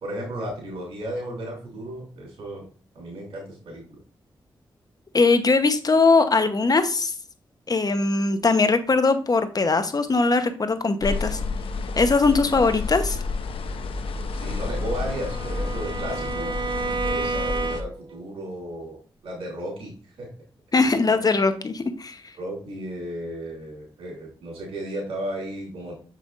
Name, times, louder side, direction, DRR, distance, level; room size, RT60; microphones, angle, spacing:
voice 1, 0.0-2.7 2.9-4.0 14.3-16.6 17.0-19.0 19.2-20.3 21.1-21.2 22.4-25.9, right 1 dB, 85° right, -1 dB, 3.0 m, -34 dB
voice 2, 5.1-7.1 7.7-11.4 12.0-13.2 20.7-22.2, left 3 dB, 45° left, 10 dB, 0.9 m, -20 dB
sound 1, 11.0-17.8, left 3 dB, 75° left, 0.7 m, -30 dB
Bowed string instrument, 14.3-18.2, right 3 dB, 55° right, 0.5 m, -31 dB
6.7 x 5.7 x 2.5 m, 0.40 s
cardioid pair, 50°, 9 cm